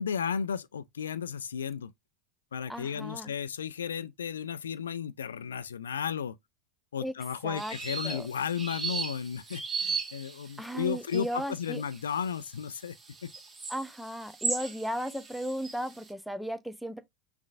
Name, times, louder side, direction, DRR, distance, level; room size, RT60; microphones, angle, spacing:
voice 1, 0.0-1.9 2.5-6.4 6.9-13.0 13.2-13.3, left 7 dB, 75° left, 0.4 m, -34 dB
voice 2, 2.7-3.3 7.0-7.1 7.4-7.7 8.0-8.2 10.6-11.8 13.7-17.0, equal, ahead, 0.7 m, -35 dB
sound 1, 7.6-16.0, right 4 dB, 25° right, 1.4 m, -37 dB
5.6 x 3.5 x 2.4 m
figure-of-eight pair, 80°, 0 cm